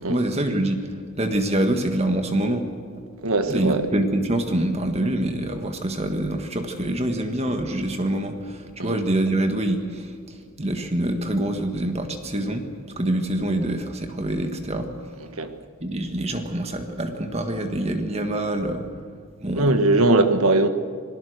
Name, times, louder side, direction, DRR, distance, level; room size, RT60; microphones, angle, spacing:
voice 1, 0.1-0.8 1.2-2.7 3.5-10.1 10.6-12.6 13.0-14.9 15.8-18.8 19.4-19.7, right 1 dB, 30° right, 6 dB, 1.7 m, -25 dB
voice 2, 3.2-3.9 8.8-9.0 15.3-15.5 19.5-20.7, right 2 dB, 80° right, 8 dB, 1.6 m, -20 dB
27.0 x 18.5 x 6.6 m, 2.3 s
head